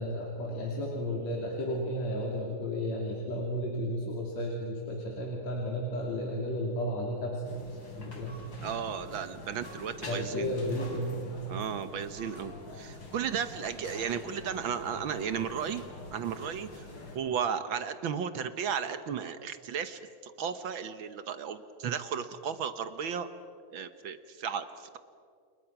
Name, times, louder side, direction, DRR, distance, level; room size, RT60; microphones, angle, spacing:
voice 1, 0.0-8.4 10.1-11.4, equal, 65° left, -1 dB, 4.1 m, -33 dB
sound 1, 7.4-17.2, left 1 dB, 40° left, 4.3 m, -45 dB
voice 2, 8.6-10.5 11.5-15.8 16.1-16.9 17.1-23.3 23.7-25.0, right 7 dB, 70° right, 10 dB, 1.2 m, -34 dB
30.0 x 29.0 x 5.9 m, 2.2 s
omnidirectional pair, 3.4 m